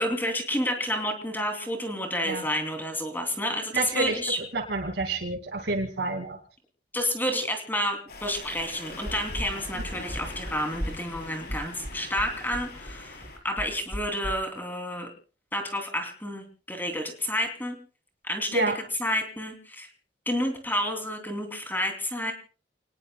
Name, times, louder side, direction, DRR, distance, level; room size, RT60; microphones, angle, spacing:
voice 1, 0.0-4.4 6.9-15.1 15.5-17.8 18.2-18.7 19.0-19.9 20.3-22.3, equal, 10° left, 5 dB, 3.0 m, -30 dB
voice 2, 3.7-4.2 4.5-6.4 18.5-18.8, right 3 dB, 75° right, 4 dB, 2.4 m, -28 dB
sound 1, 8.1-13.4, left 2 dB, 60° left, 4.6 m, -41 dB
sound 2, 9.1-14.3, equal, 10° right, 4.1 m, -36 dB
29.5 x 20.0 x 2.3 m, 0.38 s
head